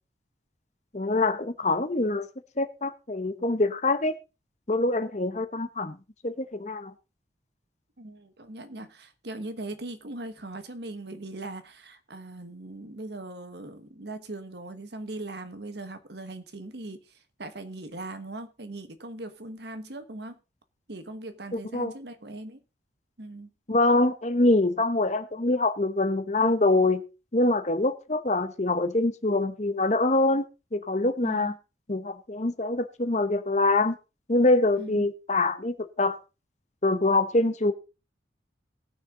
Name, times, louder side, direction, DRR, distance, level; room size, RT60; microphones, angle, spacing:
voice 1, 0.9-2.3 2.6-4.1 4.7-6.0 6.2-6.9 21.7-21.9 23.7-27.0 27.3-30.4 30.7-31.5 31.9-33.9 34.3-36.2 36.8-37.7, left 2 dB, 40° left, 1.0 m, -24 dB
voice 2, 8.0-20.4 20.9-22.6 23.2-23.5 31.2-31.6 34.8-35.1, right 2 dB, 60° right, 1.3 m, -40 dB
19.0 x 6.5 x 3.9 m
head